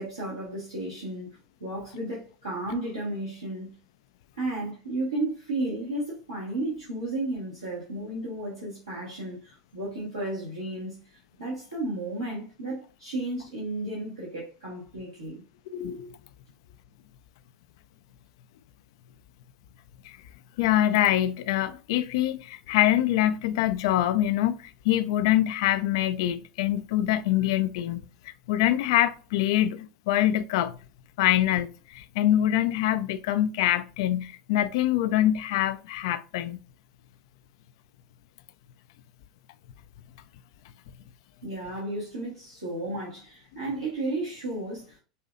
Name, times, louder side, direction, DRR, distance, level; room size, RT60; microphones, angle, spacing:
voice 1, 0.0-3.7 4.3-15.4 41.4-45.0, right 2 dB, 85° right, 1.6 m, -33 dB
voice 2, 15.7-16.1 20.0-20.2 20.6-28.0 28.5-30.8 31.2-36.6, left 13 dB, 60° left, 0.4 m, -24 dB
5.4 x 2.7 x 2.5 m
figure-of-eight pair, 80°, 3 cm